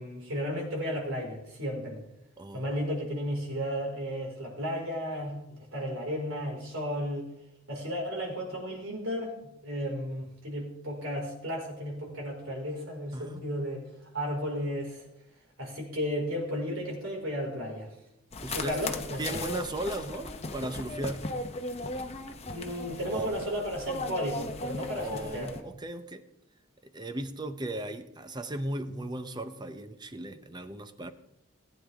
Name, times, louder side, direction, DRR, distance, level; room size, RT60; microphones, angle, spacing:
voice 1, 0.0-2.0 2.5-7.3 7.7-9.3 9.6-13.9 14.1-15.1 15.6-17.9 18.5-19.4 22.5-25.5, equal, 80° right, -1 dB, 4.9 m, -34 dB
sound 1, 18.3-25.6, left 2 dB, 30° left, 0.9 m, -37 dB
voice 2, 18.4-18.8 19.2-21.3 23.1-23.3 25.0-26.2 26.8-31.1, right 1 dB, 20° right, 10 dB, 0.7 m, -36 dB
19.5 x 9.2 x 3.6 m, 0.84 s
head